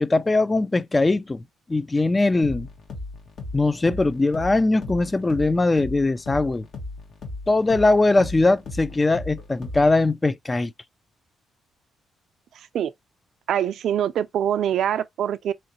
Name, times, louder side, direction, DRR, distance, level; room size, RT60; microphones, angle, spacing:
voice 1, 0.0-1.4 1.7-2.7 3.5-6.7 7.5-10.7, left 2 dB, 20° left, 0.4 m, -21 dB
sound 1, 2.4-10.1, left 2 dB, 65° left, 1.4 m, -37 dB
voice 2, 13.5-15.5, right 10 dB, 70° right, 0.4 m, -24 dB
3.9 x 3.1 x 2.9 m
cardioid pair, 90°, 0 cm